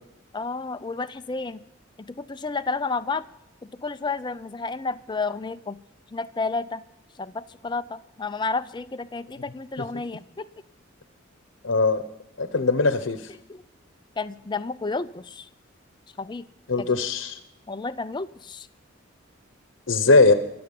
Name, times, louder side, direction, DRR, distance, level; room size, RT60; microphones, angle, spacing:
voice 1, 0.3-1.6 2.1-3.2 3.7-5.8 6.1-6.8 7.2-10.5 13.5-13.6 14.2-15.5 16.2-16.5 16.8-16.9 17.7-18.7, left 4 dB, 20° left, 11 dB, 0.5 m, -31 dB
voice 2, 11.6-12.0 12.4-13.2 16.7-17.4 19.9-20.3, left 3 dB, 65° left, 10 dB, 0.9 m, -20 dB
23.5 x 7.8 x 5.4 m, 0.80 s
head